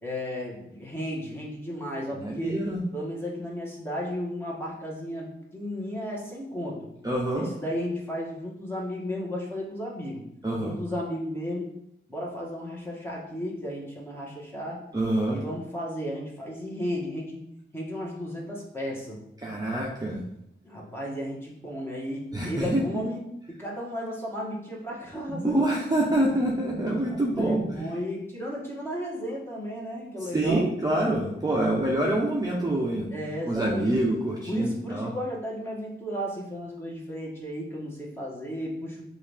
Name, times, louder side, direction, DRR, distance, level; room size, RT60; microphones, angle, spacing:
voice 1, 0.0-2.6 2.9-6.8 7.3-10.2 10.6-11.7 12.1-14.8 15.3-17.4 17.7-19.2 20.6-23.2 23.5-25.6 27.1-30.6 33.1-33.9 34.5-39.0, equal, 10° left, -4 dB, 1.5 m, -34 dB
voice 2, 2.1-2.8 7.0-7.5 10.4-10.8 14.9-15.4 19.4-20.2 22.3-23.0 25.4-27.8 30.2-33.1 33.5-35.1, right 1 dB, 20° right, -4 dB, 0.9 m, -26 dB
5.4 x 2.7 x 3.5 m, 0.77 s
cardioid pair, 70°, 21 cm